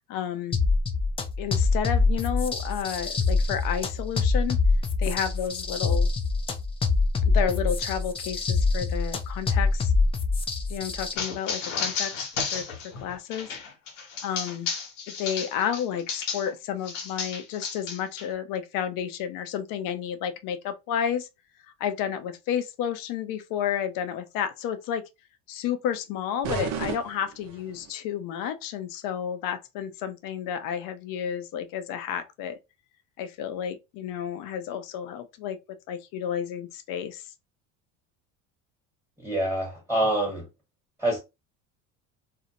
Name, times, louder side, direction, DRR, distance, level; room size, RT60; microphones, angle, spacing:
voice 1, 0.1-0.6 1.4-4.6 5.0-6.1 7.3-9.9 10.7-12.3 12.5-12.6 13.0-13.5 14.2-14.7 15.1-21.3 21.8-25.1 25.5-32.6 33.2-35.6 35.9-37.3, left 9 dB, 60° left, 0.6 m, -31 dB
sound 1, 0.5-11.1, left 3 dB, 15° left, 0.3 m, -25 dB
sound 2, 11.2-16.5 16.9-18.3, left 5 dB, 90° left, 1.1 m, -33 dB
sound 3, 26.4-27.9, right 6 dB, 45° right, 0.7 m, -33 dB
voice 2, 39.2-40.5 41.0-41.2, right 1 dB, 5° right, 1.2 m, -26 dB
2.6 x 2.0 x 2.8 m
supercardioid pair, 105°, 37 cm